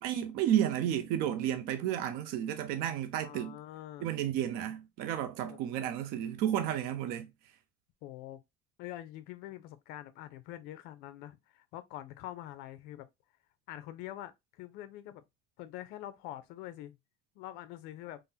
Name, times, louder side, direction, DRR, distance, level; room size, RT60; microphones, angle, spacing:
voice 1, 0.0-3.6 4.0-7.3, right 10 dB, 60° right, 0.5 m, -32 dB
voice 2, 3.2-4.1 5.4-5.6 8.0-8.4 8.8-13.1 13.7-15.2 15.6-16.9 17.4-18.2, left 13 dB, 65° left, 0.5 m, -45 dB
3.7 x 2.0 x 2.7 m
cardioid pair, 170°, 17 cm